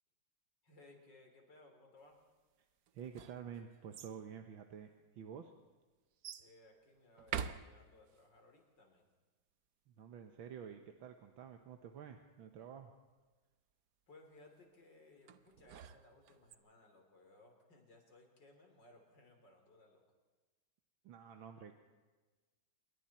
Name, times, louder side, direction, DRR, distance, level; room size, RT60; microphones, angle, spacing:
voice 1, 0.6-2.3 6.4-9.1 14.1-20.0, left 2 dB, 60° left, 3 dB, 4.3 m, -62 dB
sound 1, 2.9-4.2 5.0-5.1 6.2-6.5 7.2-8.2 15.3-16.5, right 8 dB, 60° right, 1.1 m, -45 dB
voice 2, 2.9-5.5 9.9-12.9 21.0-21.7, right 8 dB, 75° right, 6 dB, 1.9 m, -50 dB
27.0 x 22.5 x 4.4 m, 1.3 s
omnidirectional pair, 2.2 m